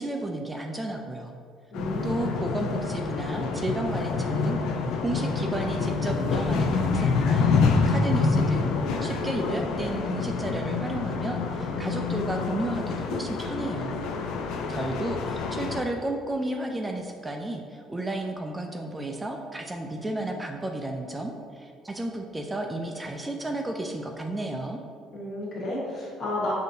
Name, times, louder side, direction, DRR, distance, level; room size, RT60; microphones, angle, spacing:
voice 1, 0.0-1.4 2.0-4.6 5.0-8.7 9.0-14.0 14.7-24.8, right 1 dB, 15° right, 2 dB, 0.3 m, -32 dB
sound 1, 1.7-15.8, left 4 dB, 75° left, 0.3 m, -27 dB
voice 2, 1.7-2.3 25.1-26.5, left 1 dB, 50° left, -5 dB, 1.4 m, -32 dB
5.2 x 2.7 x 2.6 m, 2.2 s
cardioid pair, 100°, 0 cm